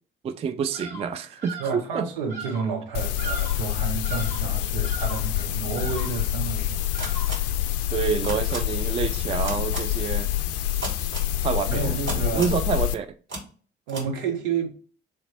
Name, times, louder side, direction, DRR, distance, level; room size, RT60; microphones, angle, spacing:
voice 1, 0.2-2.1 7.9-10.3 10.7-11.1 11.4-13.1, right 6 dB, 20° right, 0.3 m, -28 dB
Bird vocalization bird call bird song, 0.7-1.1 1.4-1.8 2.3-2.7 3.2-3.7 4.0-4.5 4.8-5.3 5.7-6.3 6.9-7.5, right 4 dB, 85° right, 1.5 m, -38 dB
voice 2, 1.6-6.8 7.1-7.4 11.7-12.5 13.9-14.7, right 6 dB, 70° right, 0.8 m, -30 dB
sound 1, 2.9-12.9, left 13 dB, 55° left, 0.4 m, -27 dB
sound 2, 7.0-7.3 8.2-8.6 9.4-9.8 10.8-11.3 12.1-12.6 13.3-13.4 13.9-14.0, right 2 dB, 40° right, 1.7 m, -32 dB
3.2 x 2.9 x 4.2 m
figure-of-eight pair, 45°, 29 cm